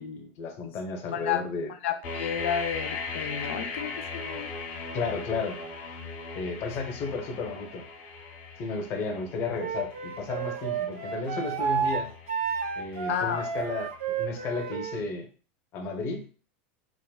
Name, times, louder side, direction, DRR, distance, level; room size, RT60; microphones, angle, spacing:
voice 1, 0.0-1.7 4.9-5.6 6.3-7.8 8.6-12.1 12.8-15.3 15.7-16.3, left 4 dB, 40° left, 0.6 m, -33 dB
voice 2, 1.1-1.4 1.8-4.5 13.1-13.5, left 8 dB, 90° left, 0.4 m, -31 dB
sound 1, 2.0-13.8, left 4 dB, 75° left, 1.0 m, -39 dB
Wind instrument woodwind instrument, 9.6-15.0, right 7 dB, 85° right, 0.5 m, -31 dB
3.4 x 2.1 x 2.3 m
supercardioid pair, 145°, 7 cm